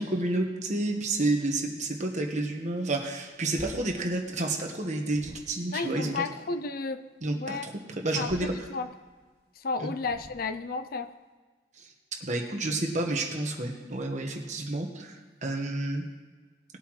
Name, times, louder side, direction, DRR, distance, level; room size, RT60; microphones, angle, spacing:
voice 1, 0.0-6.2 7.2-8.5 9.8-9.9 11.8-11.9 12.2-16.0, right 2 dB, 40° right, 2 dB, 1.3 m, -30 dB
sound 1, 3.3-4.8 5.0-5.8 8.0-9.2 10.0-10.8, equal, 55° right, 3.0 m, -48 dB
voice 2, 5.7-7.0 7.3-7.7 8.1-8.9 9.6-11.1, left 4 dB, 55° left, 10 dB, 0.5 m, -33 dB
19.0 x 8.1 x 3.2 m, 1.4 s
head